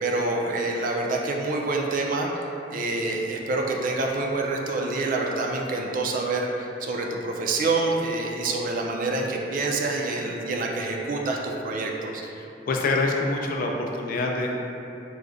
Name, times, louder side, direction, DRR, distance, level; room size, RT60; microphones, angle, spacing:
voice 1, 0.0-12.2, right 2 dB, 50° right, 0 dB, 0.3 m, -27 dB
voice 2, 12.4-14.6, left 2 dB, 55° left, 1 dB, 0.3 m, -26 dB
4.6 x 2.1 x 2.5 m, 2.8 s
head